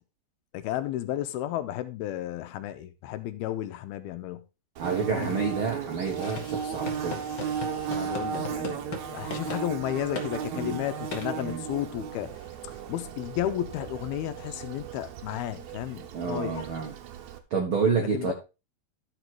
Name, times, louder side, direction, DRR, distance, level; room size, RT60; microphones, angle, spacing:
voice 1, 0.5-4.4 5.1-5.4 7.9-12.3 12.6-16.7 18.1-18.3, left 12 dB, 85° left, 2.6 m, -33 dB
Bird / Buzz, 4.8-17.4, right 7 dB, 70° right, 1.8 m, -36 dB
voice 2, 4.8-7.2 10.5-10.8 11.4-11.6 16.1-16.9 17.5-18.3, right 5 dB, 85° right, 1.1 m, -29 dB
sound 1, 6.2-9.0 9.3-9.6 10.1-10.3 11.1-11.3, left 3 dB, 50° left, 1.4 m, -38 dB
11.5 x 5.1 x 4.6 m
omnidirectional pair, 4.5 m